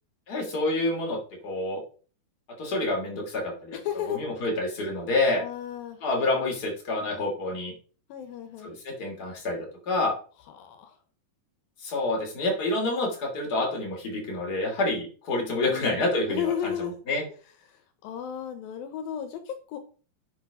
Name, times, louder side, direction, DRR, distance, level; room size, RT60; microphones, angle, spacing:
voice 1, 0.3-1.2 1.4-1.8 2.6-3.8 4.1-5.4 6.0-7.7 8.6-9.6 9.9-10.1 11.8-16.7 17.1-17.2, left 2 dB, 30° left, 0 dB, 3.0 m, -28 dB
voice 2, 3.7-4.2 5.3-6.0 8.1-8.7 10.5-11.0 15.5-16.0 16.3-17.0 17.7-19.8, left 9 dB, 80° left, 8 dB, 2.7 m, -34 dB
9.9 x 6.4 x 3.7 m, 0.38 s
omnidirectional pair, 4.1 m